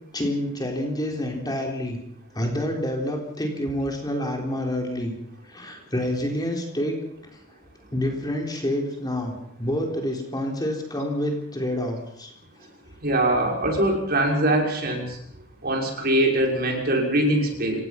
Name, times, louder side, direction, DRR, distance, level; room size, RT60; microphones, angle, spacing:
voice 1, 0.1-2.0 2.3-5.1 5.4-7.0 7.3-7.4 7.9-12.3, left 1 dB, 20° left, 1 dB, 3.9 m, -28 dB
voice 2, 13.0-15.2 15.6-17.8, right 1 dB, 45° right, 0 dB, 6.0 m, -22 dB
28.5 x 17.5 x 6.0 m, 0.74 s
head